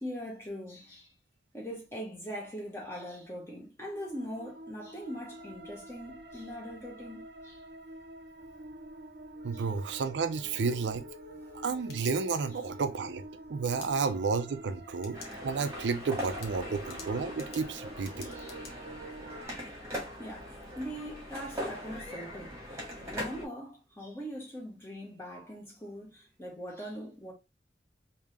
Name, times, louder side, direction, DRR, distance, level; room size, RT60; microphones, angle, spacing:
voice 1, 0.0-1.1 1.5-7.6 9.5-9.6 11.4-11.5 18.2-18.6 20.2-27.3, equal, 15° left, 1.3 m, -42 dB
sound 1, 3.9-19.4, right 1 dB, 60° right, 0.8 m, -47 dB
voice 2, 9.4-11.0 11.5-13.2 13.5-18.3, right 5 dB, 85° right, 0.4 m, -32 dB
sound 2, 11.5-12.7 13.6-13.9 14.9-15.4 15.7-15.8 16.2-18.7, left 5 dB, 65° left, 0.9 m, -49 dB
sound 3, 15.1-23.5, equal, 15° right, 1.5 m, -41 dB
3.5 x 2.8 x 3.2 m
head